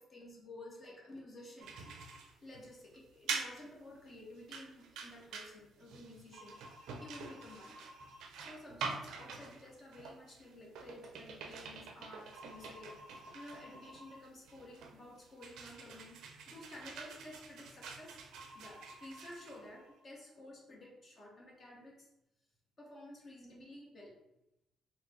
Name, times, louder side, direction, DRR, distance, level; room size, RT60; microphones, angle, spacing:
voice 1, 0.0-1.9 2.4-7.8 8.4-18.2 18.5-22.1 22.8-24.2, left 1 dB, 45° left, -2 dB, 0.9 m, -53 dB
sound 1, 1.6-20.0, right 5 dB, 85° right, 0.4 m, -46 dB
3.6 x 2.0 x 3.3 m, 0.87 s
cardioid pair, 90°, 0 cm